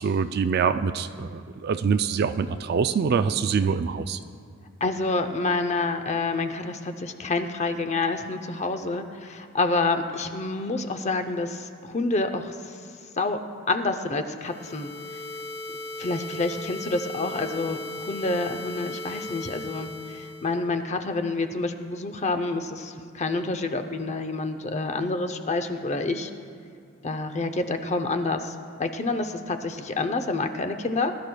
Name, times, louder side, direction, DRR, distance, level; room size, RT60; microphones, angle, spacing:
voice 1, 0.0-4.2, right 6 dB, 50° right, 11 dB, 0.3 m, -25 dB
voice 2, 4.8-12.8 13.2-15.2 16.0-26.3 27.0-31.2, left 3 dB, 35° left, 8 dB, 0.6 m, -28 dB
sound 1, 14.4-20.6, left 1 dB, 80° left, 3.5 m, -37 dB
21.0 x 12.0 x 2.3 m, 2.2 s
head